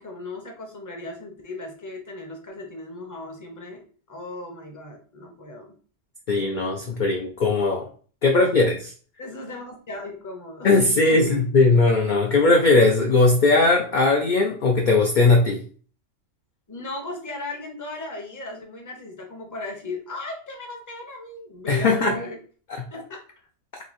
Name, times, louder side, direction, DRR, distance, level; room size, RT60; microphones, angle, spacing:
voice 1, 0.0-5.7 8.3-8.4 9.2-11.5 16.7-22.4 22.9-23.2, left 2 dB, 20° left, 1 dB, 0.6 m, -36 dB
voice 2, 6.3-7.9 8.2-8.9 10.6-15.6 21.7-22.2, left 3 dB, 60° left, 2 dB, 0.5 m, -19 dB
3.1 x 2.6 x 4.0 m, 0.42 s
omnidirectional pair, 1.3 m